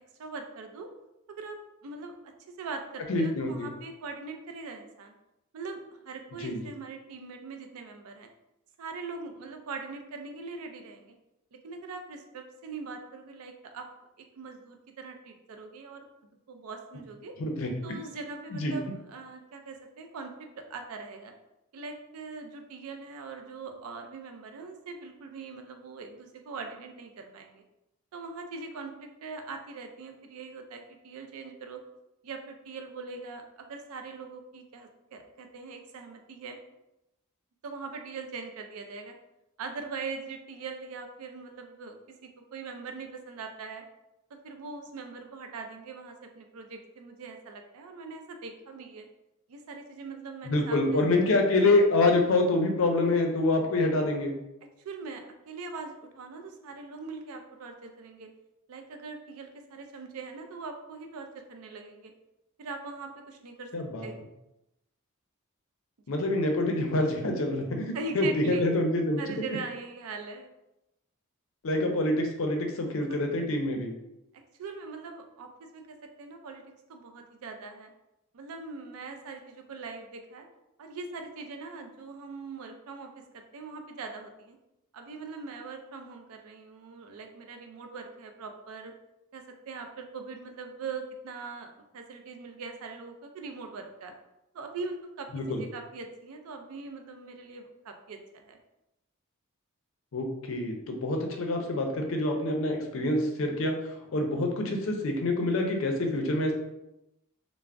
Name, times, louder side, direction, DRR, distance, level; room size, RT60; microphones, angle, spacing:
voice 1, 0.2-0.9 1.4-1.6 1.8-2.1 2.5-5.1 5.5-8.3 8.8-11.2 11.5-13.9 14.2-16.1 16.5-17.3 17.8-21.3 21.7-27.6 28.1-31.8 32.2-36.6 37.6-39.2 39.6-43.8 44.3-49.1 49.5-51.0 54.8-58.3 58.7-62.1 62.6-63.7 64.0-64.2 67.9-68.7 69.2-70.5 73.1-73.2 74.6-76.6 76.9-77.9 78.3-80.5 80.8-84.6 84.9-88.9 89.3-94.1 94.5-98.6, right 4 dB, 80° right, 5 dB, 0.4 m, -41 dB
voice 2, 3.1-3.7 6.4-6.6 17.4-17.7 18.5-18.7 50.4-54.3 63.7-64.1 66.1-69.2 71.6-73.9 95.3-95.6 100.1-106.5, left 2 dB, 65° left, 3 dB, 0.5 m, -26 dB
2.4 x 2.0 x 3.3 m, 0.90 s
head